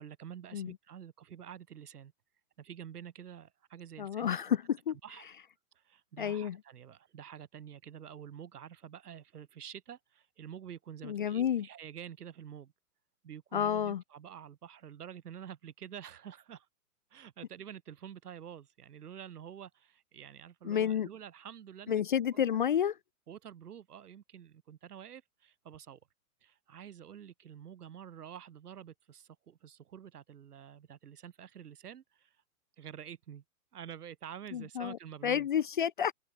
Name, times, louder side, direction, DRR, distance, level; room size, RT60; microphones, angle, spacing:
voice 1, 0.0-2.1 2.6-4.6 5.0-5.3 5.7-12.7 13.2-16.7 17.1-22.0 22.3-22.4 23.3-26.0 26.4-32.4 32.8-33.4 33.7-35.5, right 9 dB, 80° right, 6.2 m, -48 dB
voice 2, 4.0-4.6 4.9-5.0 6.2-6.6 11.0-11.7 13.5-14.0 20.6-21.1 21.9-22.9 34.5-35.0 35.2-36.1, left 9 dB, 35° left, 0.5 m, -30 dB
hypercardioid pair, 170°, 45 cm